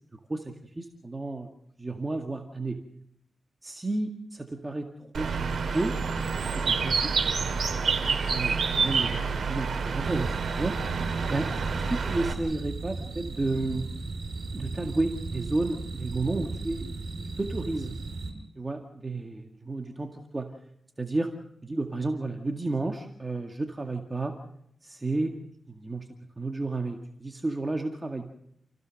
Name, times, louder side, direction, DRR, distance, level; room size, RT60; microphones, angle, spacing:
voice 1, 0.1-1.5 1.8-2.8 3.6-5.9 6.4-7.1 7.9-8.0 8.3-10.8 11.3-11.5 11.7-13.9 14.5-16.9 17.4-17.9 18.6-20.5 21.0-21.3 21.6-24.4 24.8-25.3 25.7-26.1 26.4-28.3, right 2 dB, 25° right, 4 dB, 2.0 m, -32 dB
Bird, 5.1-12.3, right 5 dB, 80° right, 2.9 m, -28 dB
sound 1, 10.0-18.3, right 3 dB, 60° right, 6.4 m, -36 dB
29.0 x 16.0 x 6.5 m, 0.75 s
wide cardioid pair, 95°, 0 cm